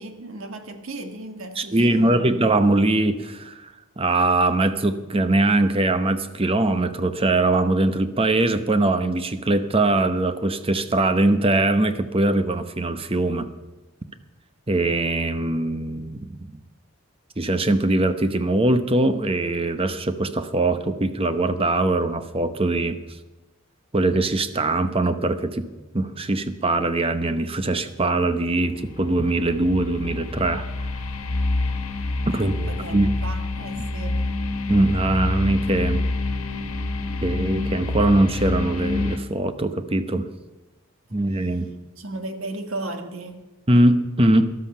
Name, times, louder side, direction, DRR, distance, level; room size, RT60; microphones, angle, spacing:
voice 1, 0.0-2.3 32.3-34.3 42.0-43.5, right 2 dB, 65° right, 7 dB, 1.6 m, -35 dB
voice 2, 1.6-3.5 4.0-13.5 14.7-16.3 17.4-23.0 23.9-25.7 25.9-30.7 32.3-33.1 34.7-36.0 37.2-40.3 41.1-41.7 43.7-44.5, right 2 dB, 25° right, 10 dB, 0.8 m, -21 dB
sound 1, 28.5-39.2, left 2 dB, 80° left, 1.5 m, -27 dB
13.0 x 12.0 x 5.5 m, 1.1 s
head